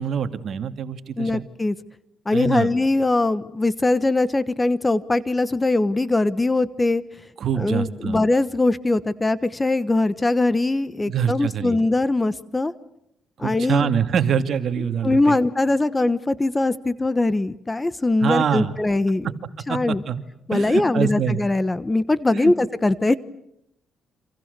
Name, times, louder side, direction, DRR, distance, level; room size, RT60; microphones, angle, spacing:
voice 1, 0.0-1.5 2.3-2.7 7.4-8.2 11.1-11.8 13.4-15.4 18.2-18.7 19.7-20.2 20.5-21.4 22.3-22.5, right 8 dB, 60° right, 8 dB, 2.2 m, -25 dB
voice 2, 1.2-1.7 2.3-7.0 7.6-12.7 13.4-13.9 15.0-19.3 19.7-20.0 20.5-23.1, left 2 dB, 20° left, 16 dB, 1.2 m, -21 dB
29.5 x 26.5 x 6.8 m, 0.78 s
cardioid pair, 90°, 0 cm